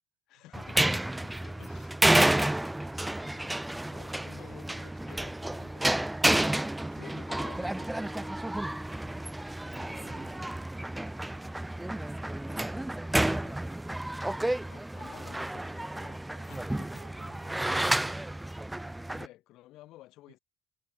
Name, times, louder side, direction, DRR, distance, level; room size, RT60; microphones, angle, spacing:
voice 1, 0.3-2.8 3.2-8.8 12.9-13.6 14.7-16.9 19.1-20.4, left 16 dB, 70° left, 3.6 m, -54 dB
sound 1, 0.5-19.3, right 1 dB, 10° right, 0.5 m, -30 dB
voice 2, 16.3-18.5 20.3-20.4, right 24 dB, 85° right, 3.0 m, -62 dB
hypercardioid pair, 60°, 0 cm